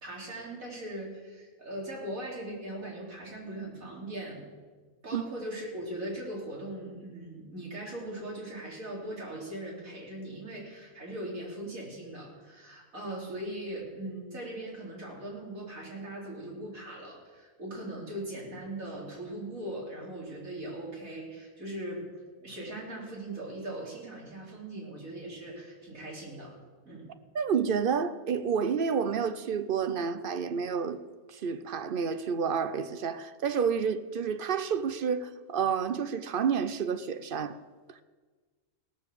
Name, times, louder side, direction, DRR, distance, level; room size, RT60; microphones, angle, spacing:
voice 1, 0.0-4.5 5.0-22.1 22.4-26.5 26.8-27.1, right 1 dB, 75° right, 3.8 m, -40 dB
voice 2, 27.3-31.0 31.3-37.6 37.9-38.0, right 6 dB, 55° right, 0.6 m, -29 dB
17.5 x 7.1 x 6.7 m
omnidirectional pair, 1.4 m